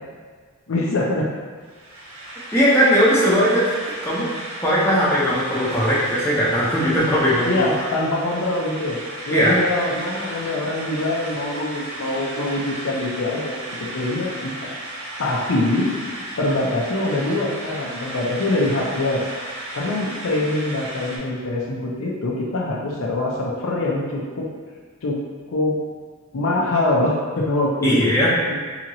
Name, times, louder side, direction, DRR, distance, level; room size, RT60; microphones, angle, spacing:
voice 1, 0.7-1.3 7.4-9.0 9.3-13.6 13.9-14.7 15.2-15.9 16.4-19.2 19.8-24.5 25.0-25.2 25.5-25.8 26.3-28.1 28.5-28.6, left 2 dB, 80° left, -3 dB, 0.5 m, -24 dB
sound 1, 1.6-21.2, right 1 dB, 80° right, 0.6 m, -34 dB
voice 2, 2.5-4.3 4.6-7.8 9.3-9.6 27.8-28.4, equal, 10° left, -8 dB, 0.6 m, -19 dB
2.8 x 2.8 x 2.6 m, 1.5 s
head